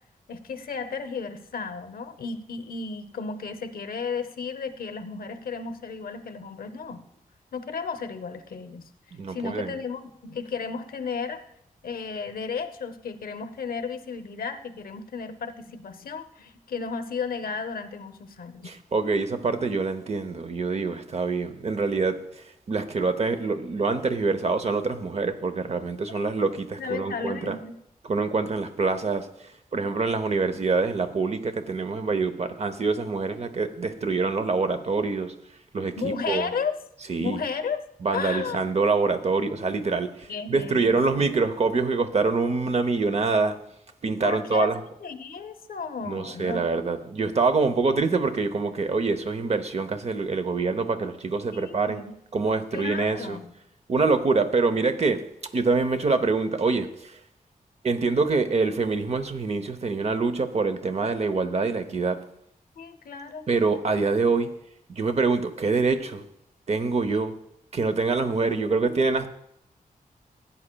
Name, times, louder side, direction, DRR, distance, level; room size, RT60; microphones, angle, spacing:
voice 1, 0.3-7.0 7.5-8.8 9.3-11.4 11.8-18.7 26.1-26.2 26.8-27.8 36.0-36.7 37.2-37.8 38.1-38.6 40.3-41.3 44.2-44.7 45.0-46.8 51.5-52.2 52.7-53.5 62.8-63.4, left 5 dB, 85° left, 10 dB, 0.7 m, -34 dB
voice 2, 9.1-9.7 18.6-27.6 28.1-29.3 29.7-35.3 35.7-36.5 37.1-37.4 38.0-43.6 44.0-44.8 46.0-52.1 52.3-53.4 53.9-55.2 55.5-57.2 57.8-62.2 63.5-64.5 64.9-66.2 66.7-67.3 67.7-69.3, right 4 dB, 45° right, 9 dB, 0.7 m, -25 dB
16.0 x 8.7 x 2.3 m, 0.78 s
wide cardioid pair, 130°, 15 cm